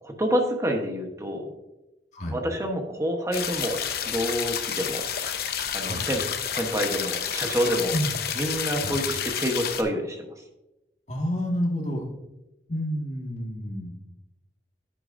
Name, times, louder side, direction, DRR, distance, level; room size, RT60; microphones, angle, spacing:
voice 1, 0.0-1.5 2.3-5.0 5.7-6.2 6.5-7.9 8.4-10.4, equal, 15° right, 3 dB, 1.0 m, -28 dB
sound 1, 3.3-9.8, left 8 dB, 55° left, 0.8 m, -30 dB
voice 2, 11.1-12.0 12.7-13.9, equal, 40° left, -1 dB, 1.8 m, -29 dB
10.0 x 9.9 x 2.6 m, 0.97 s
head